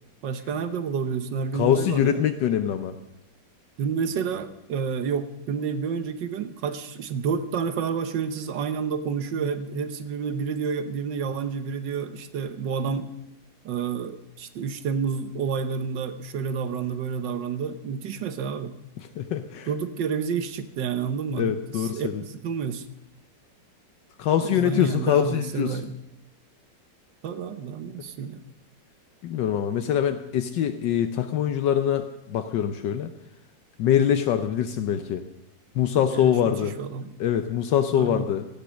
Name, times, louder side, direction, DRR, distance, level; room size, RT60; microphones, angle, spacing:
voice 1, 0.2-2.2 3.8-13.1 13.7-18.7 19.7-22.8 24.4-26.0 27.2-28.4 36.0-37.1 37.9-38.3, right 6 dB, 75° right, 11 dB, 1.7 m, -29 dB
voice 2, 1.5-2.9 19.0-19.7 21.4-22.2 24.2-25.8 29.2-33.1 33.8-35.2 35.7-36.8 37.2-38.5, left 9 dB, 80° left, 8 dB, 1.4 m, -24 dB
17.0 x 12.5 x 6.3 m, 0.87 s
omnidirectional pair, 1.9 m